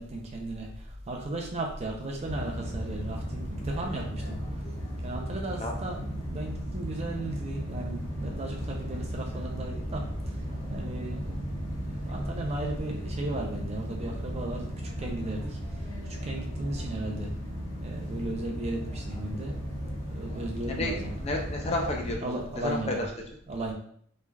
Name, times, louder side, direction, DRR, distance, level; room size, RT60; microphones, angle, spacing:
voice 1, 0.0-4.6 5.0-10.4 10.7-11.3 11.7-15.6 16.0-17.3 17.8-19.6 20.1-21.1 22.2-23.0 23.5-23.7, right 2 dB, 30° right, 0 dB, 0.4 m, -36 dB
sound 1, 2.2-22.2, equal, 70° left, 1.0 m, -36 dB
voice 2, 21.2-22.3 22.6-22.9, left 2 dB, 30° left, 0 dB, 0.4 m, -30 dB
3.2 x 2.2 x 2.2 m, 0.62 s
head